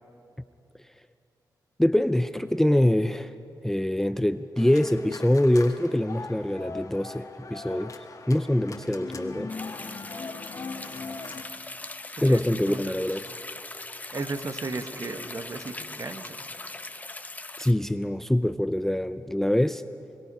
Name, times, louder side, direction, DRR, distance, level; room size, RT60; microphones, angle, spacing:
voice 1, 1.8-3.3 3.6-9.5 12.2-13.2 17.6-19.8, left 1 dB, 5° left, 12 dB, 0.5 m, -24 dB
sound 1, 4.6-11.4, left 4 dB, 45° left, 1.5 m, -40 dB
sound 2, 9.5-17.7, left 2 dB, 20° left, 0.9 m, -40 dB
voice 2, 12.2-13.0 14.1-16.5, right 3 dB, 45° right, 8 dB, 1.3 m, -35 dB
22.5 x 22.5 x 5.5 m, 2.9 s
cardioid pair, 65°, 8 cm